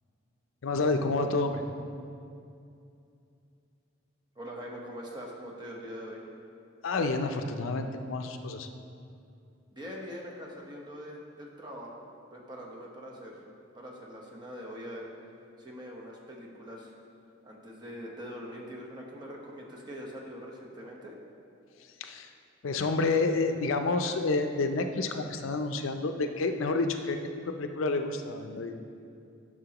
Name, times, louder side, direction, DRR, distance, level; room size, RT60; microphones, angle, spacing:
voice 1, 0.6-1.6 6.8-8.7 22.0-22.3 22.6-27.2 27.6-28.7, left 3 dB, 80° left, 7 dB, 0.5 m, -29 dB
voice 2, 4.3-6.2 9.7-12.0 12.3-13.4 13.7-15.1 15.6-16.9 17.4-21.2, equal, 20° right, -2 dB, 1.0 m, -43 dB
11.0 x 6.2 x 2.9 m, 2.5 s
head